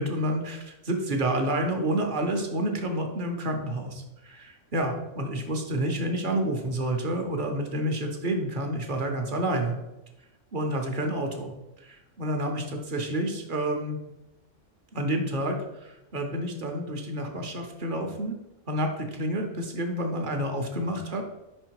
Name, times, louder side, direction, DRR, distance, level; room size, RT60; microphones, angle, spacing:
voice 1, 0.0-9.8 10.5-14.0 14.9-18.3 18.7-21.2, right 1 dB, 45° right, 3 dB, 0.8 m, -29 dB
5.2 x 4.3 x 4.6 m, 0.95 s
omnidirectional pair, 1.4 m